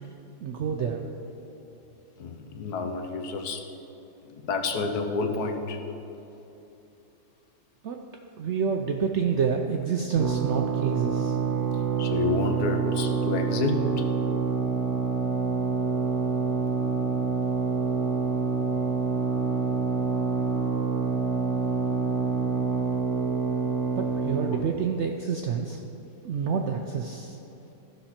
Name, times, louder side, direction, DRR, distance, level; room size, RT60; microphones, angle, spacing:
voice 1, 0.4-1.0 7.8-8.0 8.4-11.4 23.9-25.8 26.2-27.4, right 6 dB, 75° right, 3 dB, 0.6 m, -28 dB
voice 2, 2.2-3.6 4.3-5.8 12.0-14.0, left 4 dB, 75° left, 5 dB, 1.3 m, -29 dB
sound 1, 10.1-24.7, right 5 dB, 45° right, 1.1 m, -27 dB
14.0 x 5.9 x 4.3 m, 3.0 s
omnidirectional pair, 1.7 m